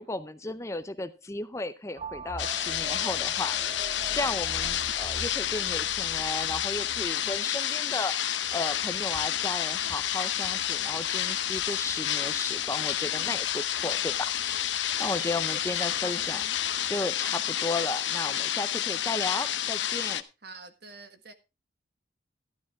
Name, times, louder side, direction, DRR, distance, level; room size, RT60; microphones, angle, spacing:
voice 1, 0.0-14.3 14.6-16.4 16.9-20.2, left 2 dB, 15° left, 0.6 m, -34 dB
sound 1, 2.0-7.4, right 3 dB, 35° right, 0.5 m, -42 dB
sound 2, 2.4-20.2, left 11 dB, 80° left, 0.8 m, -30 dB
Bird / Insect, 8.4-17.0, equal, 10° right, 2.2 m, -52 dB
voice 2, 15.4-16.6 20.4-21.3, right 4 dB, 60° right, 1.5 m, -47 dB
13.0 x 11.5 x 3.6 m
head